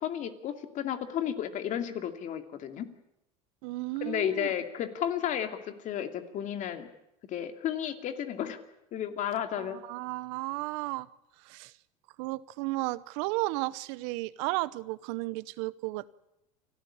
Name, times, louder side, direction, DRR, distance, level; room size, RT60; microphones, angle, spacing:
voice 1, 0.0-2.9 4.0-5.5 5.8-6.9 7.3-8.6 8.9-9.8, left 10 dB, 50° left, 8 dB, 2.6 m, -32 dB
voice 2, 3.6-4.5 9.6-11.1 11.4-11.7 12.2-16.1, right 21 dB, 70° right, 18 dB, 0.9 m, -34 dB
29.0 x 13.0 x 10.0 m, 0.88 s
supercardioid pair, 105°, 17 cm